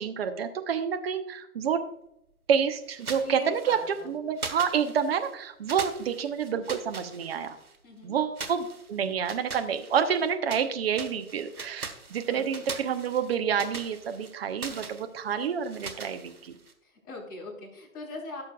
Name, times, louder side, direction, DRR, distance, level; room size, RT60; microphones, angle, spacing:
voice 1, 0.0-1.8 2.5-3.8 4.1-7.6 8.0-16.5, right 7 dB, 45° right, 8 dB, 1.0 m, -28 dB
sound 1, 2.9-4.0 4.4-5.3 5.7-7.8 8.4-10.7 10.9-16.7, right 4 dB, 85° right, 1.5 m, -41 dB
voice 2, 3.1-4.1 7.8-8.2 12.3-12.7 16.8-18.4, left 2 dB, 20° left, -4 dB, 3.8 m, -41 dB
16.5 x 6.8 x 2.4 m, 0.81 s
figure-of-eight pair, 135°, 43 cm